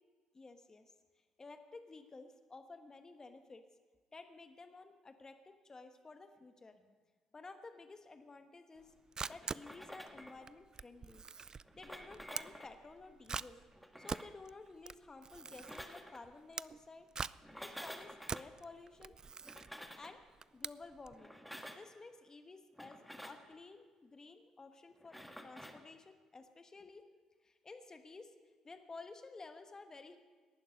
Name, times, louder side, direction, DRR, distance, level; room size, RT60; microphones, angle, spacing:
voice 1, 0.3-0.9 1.4-3.6 4.1-7.0 7.3-8.9 9.3-11.2 11.5-13.6 14.0-17.1 17.6-19.1 20.0-20.2 20.5-21.4 21.7-25.2 25.4-27.0 27.4-28.3 28.6-30.2, left 3 dB, 30° left, 7 dB, 1.3 m, -53 dB
Camera, 8.8-21.2, right 5 dB, 35° right, 0.4 m, -45 dB
sound 1, 9.2-10.5 11.6-12.8 13.7-14.4 15.4-16.2 17.4-18.5 19.4-20.2 21.2-21.9 22.7-23.5 25.0-25.8, equal, ahead, 1.6 m, -51 dB
18.5 x 11.5 x 5.3 m, 1.4 s
hypercardioid pair, 50°, 2 cm